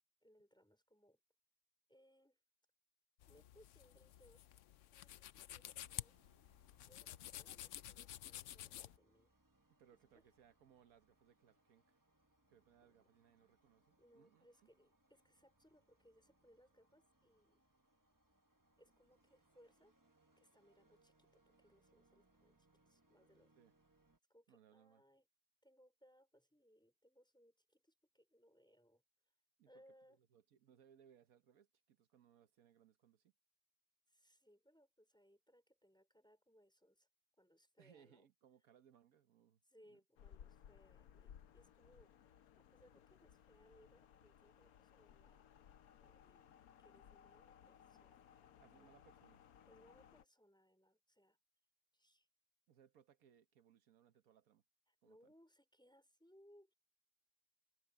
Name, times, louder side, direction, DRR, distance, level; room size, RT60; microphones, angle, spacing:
voice 1, 0.2-1.2 1.9-2.4 3.3-4.5 4.9-6.3 6.9-9.3 10.1-10.2 12.8-13.1 14.0-17.6 18.8-19.9 20.4-22.6 22.8-23.6 24.3-25.3 25.6-29.0 29.7-30.2 34.1-37.1 37.4-38.3 39.6-45.4 46.0-46.5 46.8-48.3 48.8-48.9 49.7-51.4 51.9-52.3 54.9-56.7, equal, 5° left, 4.7 m, -69 dB
sound 1, 3.2-9.0, left 12 dB, 70° left, 0.9 m, -52 dB
sound 2, 5.5-24.2, right 2 dB, 15° right, 1.2 m, -77 dB
voice 2, 9.8-12.0 12.5-14.7 23.5-23.7 24.5-25.0 29.6-29.8 30.2-33.3 37.8-39.6 39.9-40.0 48.6-49.4 52.7-54.6 55.0-55.3, right 9 dB, 75° right, 1.5 m, -69 dB
sound 3, 40.2-50.2, left 9 dB, 85° left, 1.3 m, -63 dB
omnidirectional pair, 1.5 m